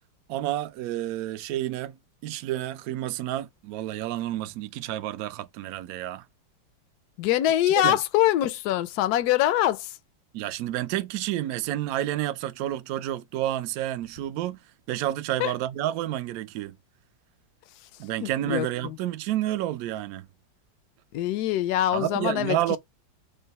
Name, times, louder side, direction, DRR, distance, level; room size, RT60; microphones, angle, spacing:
voice 1, 0.3-6.2 7.8-8.0 10.3-14.6 14.9-16.8 18.0-20.3 21.9-22.8, right 13 dB, 75° right, 0.8 m, -30 dB
voice 2, 7.2-9.9 15.4-15.5 18.2-19.0 21.1-22.6, left 13 dB, 70° left, 0.9 m, -24 dB
3.7 x 2.2 x 4.0 m
omnidirectional pair, 2.0 m